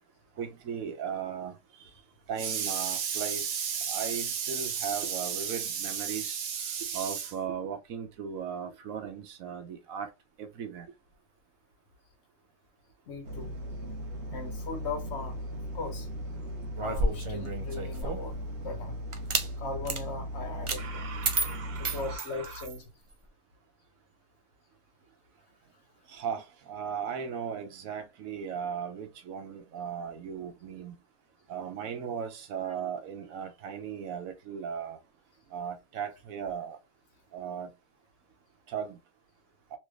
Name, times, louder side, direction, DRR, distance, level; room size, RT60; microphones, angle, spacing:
voice 1, 0.4-1.5 2.3-10.1 10.4-10.9 20.8-22.6 26.1-26.4 26.7-30.9 31.5-35.0 35.5-36.8 37.3-37.7 38.7-39.0, right 7 dB, 85° right, 1.2 m, -35 dB
voice 2, 13.1-13.5 14.3-15.4 15.7-16.1 16.8-18.3 18.6-19.0 19.6-21.1 21.8-22.9 32.6-32.7, left 3 dB, 55° left, 1.2 m, -38 dB
sound 1, 13.2-22.2, equal, 60° right, 1.1 m, -38 dB
sound 2, 16.7-18.3 19.1-19.5 19.8-20.0 20.7-20.8 21.2-22.8, right 2 dB, 45° right, 0.4 m, -31 dB
3.3 x 3.2 x 2.3 m
omnidirectional pair, 1.4 m